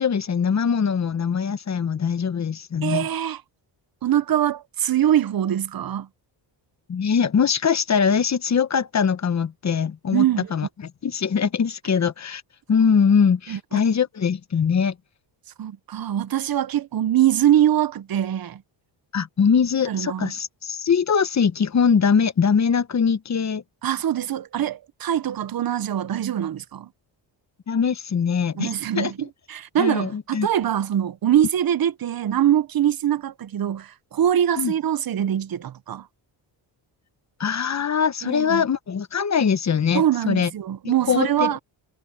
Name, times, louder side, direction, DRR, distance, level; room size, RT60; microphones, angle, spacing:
voice 1, 0.0-3.1 6.9-10.2 10.5-10.7 11.0-12.4 12.7-14.9 19.1-23.6 27.7-29.1 29.8-30.5 34.6-34.7 37.4-40.5 40.8-41.6, left 6 dB, 35° left, 1.1 m, -22 dB
voice 2, 2.8-3.4 4.0-6.1 10.1-10.5 13.5-13.8 15.6-18.6 19.9-20.3 23.8-26.9 28.5-36.1 38.2-38.6 39.9-41.6, right 11 dB, 50° right, 0.9 m, -23 dB
cardioid pair, 110°, 47 cm